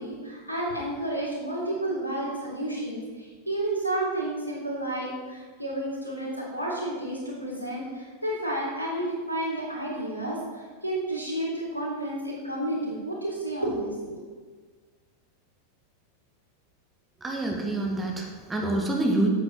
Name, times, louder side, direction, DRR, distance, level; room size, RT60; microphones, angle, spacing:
voice 1, 0.0-14.2, right 1 dB, 85° left, -4 dB, 3.4 m, -31 dB
voice 2, 17.2-19.3, right 2 dB, 15° right, 1 dB, 1.8 m, -27 dB
9.4 x 8.1 x 5.5 m, 1.5 s
figure-of-eight pair, 90°, 0 cm